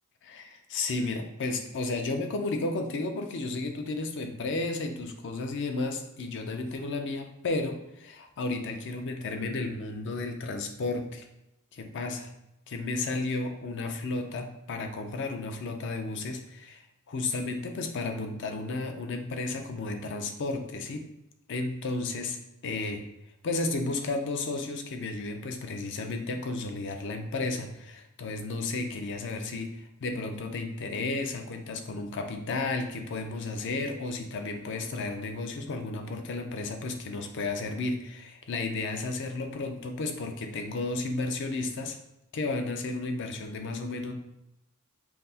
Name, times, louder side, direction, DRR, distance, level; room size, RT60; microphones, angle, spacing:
voice 1, 0.2-11.2 11.7-12.3 12.7-16.8 17.1-21.0 21.5-23.1 23.4-42.0 42.3-44.1, left 3 dB, 55° left, 5 dB, 0.5 m, -33 dB
5.6 x 2.0 x 2.7 m, 0.87 s
head